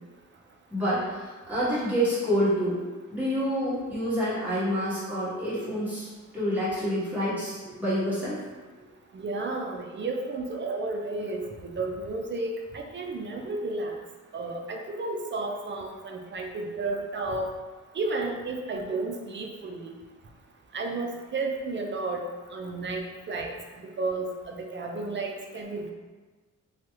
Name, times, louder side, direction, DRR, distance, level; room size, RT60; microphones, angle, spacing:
voice 1, 0.7-2.8 3.1-8.4, equal, 5° right, -12 dB, 1.4 m, -28 dB
voice 2, 9.1-14.0 14.3-17.5 17.9-19.9 20.7-22.2 22.5-23.5 24.0-25.9, right 3 dB, 40° right, 1 dB, 0.4 m, -32 dB
3.1 x 2.2 x 3.1 m, 1.3 s
wide cardioid pair, 115°, 30 cm